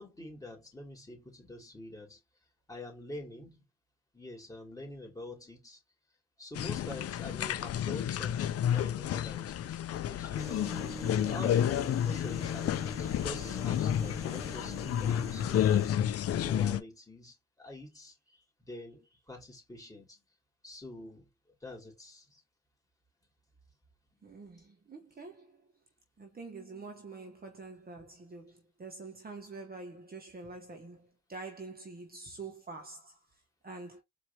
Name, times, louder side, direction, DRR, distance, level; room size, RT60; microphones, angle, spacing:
voice 1, 0.0-2.2 2.7-3.6 4.1-5.8 6.4-10.6 10.9-16.0 16.3-18.2 18.6-20.2 20.6-21.3 21.6-22.4, left 1 dB, 10° left, 2.7 m, -46 dB
sound 1, 6.5-16.8, left 10 dB, 55° left, 0.5 m, -31 dB
sound 2, 10.4-15.9, right 1 dB, 10° right, 0.7 m, -45 dB
voice 2, 24.2-25.7 26.2-34.0, right 3 dB, 30° right, 1.2 m, -46 dB
4.6 x 2.9 x 2.9 m
cardioid pair, 90°, 30 cm